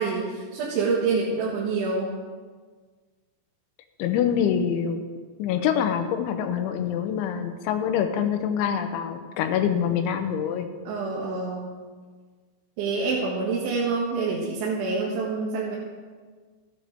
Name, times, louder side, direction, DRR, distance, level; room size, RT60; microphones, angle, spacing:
voice 1, 0.0-2.2 10.9-11.7 12.8-15.8, right 4 dB, 85° right, -7 dB, 4.1 m, -27 dB
voice 2, 4.0-5.0 5.4-10.7, left 8 dB, 85° left, 7 dB, 3.3 m, -25 dB
15.0 x 10.0 x 3.6 m, 1.5 s
omnidirectional pair, 5.3 m